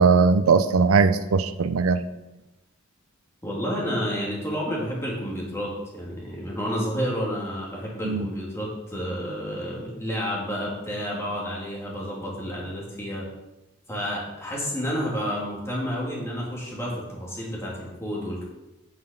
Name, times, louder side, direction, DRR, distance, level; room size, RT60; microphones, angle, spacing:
voice 1, 0.0-2.0 8.0-8.2, right 5 dB, 90° right, 11 dB, 0.5 m, -19 dB
voice 2, 3.4-13.2 13.9-18.4, equal, 15° left, -4 dB, 2.8 m, -30 dB
9.6 x 6.0 x 5.3 m, 0.97 s
head